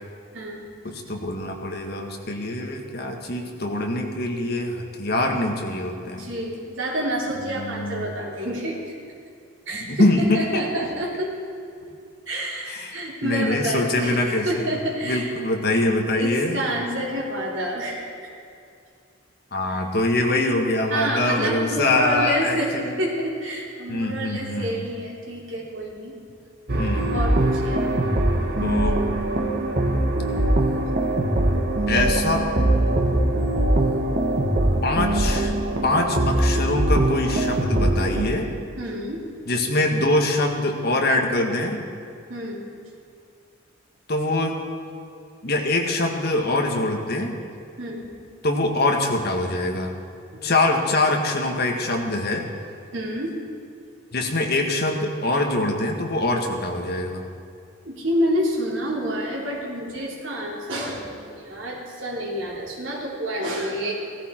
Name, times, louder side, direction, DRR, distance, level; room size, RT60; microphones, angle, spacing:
voice 1, 0.3-0.6 6.1-8.8 9.7-11.4 12.3-15.3 16.1-18.1 19.7-19.8 20.9-26.2 27.1-27.8 38.8-39.2 42.3-42.6 47.8-48.0 50.3-50.4 52.2-52.3 52.9-53.4 57.9-61.1 61.4-63.9, equal, 70° right, -3 dB, 3.5 m, -28 dB
voice 2, 0.8-6.3 7.5-8.1 9.8-10.6 12.7-14.7 15.0-16.6 19.5-23.0 23.9-24.9 26.8-27.2 28.6-29.1 31.9-32.5 34.8-35.5 35.8-38.5 39.5-41.9 44.1-44.6 45.4-47.4 48.4-49.9 50.4-52.5 54.1-57.2, left 2 dB, 50° left, 2 dB, 1.7 m, -24 dB
sound 1, 26.7-38.2, right 1 dB, 50° right, 1.4 m, -22 dB
17.0 x 14.5 x 4.5 m, 2.4 s
head